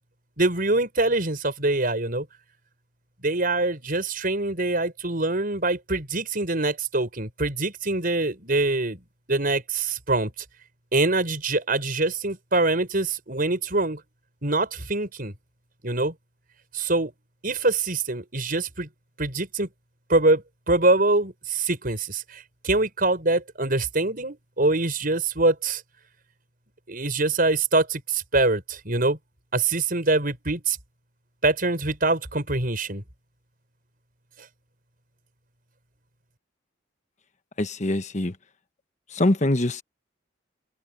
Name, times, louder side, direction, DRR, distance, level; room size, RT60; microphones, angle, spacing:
voice 1, 0.4-2.3 3.2-9.0 9.3-10.3 10.9-14.0 14.4-15.3 15.8-16.1 16.7-17.1 17.4-18.9 19.2-19.7 20.1-25.8 26.9-29.2 29.5-30.8 31.4-33.0, right 2 dB, 50° right, 6.1 m, -24 dB
voice 2, 37.6-38.3 39.2-39.8, left 1 dB, 40° left, 1.3 m, -23 dB
head